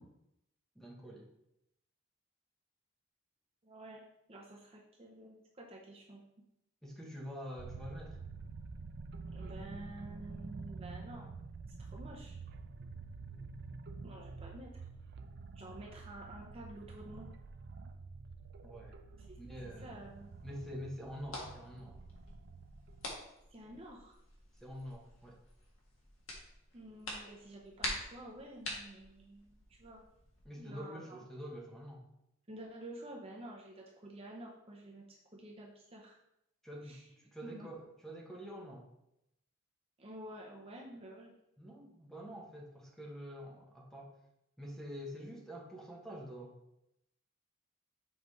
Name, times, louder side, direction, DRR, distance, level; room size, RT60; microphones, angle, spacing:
voice 1, 0.7-1.3 6.8-8.2 18.6-19.0 19.4-20.0 20.4-22.0 24.6-25.4 30.4-32.1 36.6-38.9 41.6-44.2 44.6-46.6, equal, ahead, -2 dB, 1.0 m, -46 dB
voice 2, 3.6-6.2 9.3-11.3 11.8-12.4 14.0-14.7 15.5-17.3 19.3-19.4 19.8-20.4 23.5-24.2 26.7-30.0 30.6-31.2 32.5-36.2 36.8-37.1 37.4-37.7 40.0-41.3, right 1 dB, 25° right, -2 dB, 0.7 m, -50 dB
sound 1, 7.6-23.0, right 4 dB, 50° right, 0.4 m, -48 dB
sound 2, 19.2-30.4, left 1 dB, 70° left, 1.5 m, -47 dB
7.2 x 4.8 x 3.2 m, 0.83 s
head